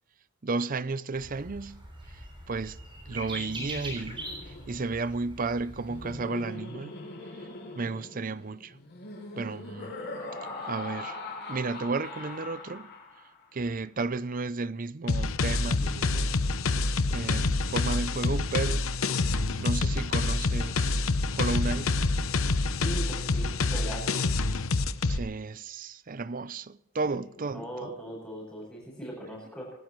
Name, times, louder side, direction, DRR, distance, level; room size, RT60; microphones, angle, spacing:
voice 1, 0.4-1.8 2.1-2.8 3.1-6.9 7.7-8.8 9.3-10.0 10.7-11.2 11.5-12.9 13.5-16.4 17.1-18.9 19.6-22.1 25.1-27.9, right 3 dB, 40° right, 0.6 m, -33 dB
sound 1, 1.1-6.2, right 1 dB, 25° right, 7.2 m, -42 dB
Laughter, 3.0-13.4, left 2 dB, 50° left, 7.1 m, -42 dB
sound 2, 15.1-25.2, left 3 dB, 80° left, 0.8 m, -27 dB
voice 2, 22.8-24.2 27.0-27.2 27.5-29.7, right 1 dB, 10° left, 7.0 m, -39 dB
27.5 x 12.5 x 3.2 m
head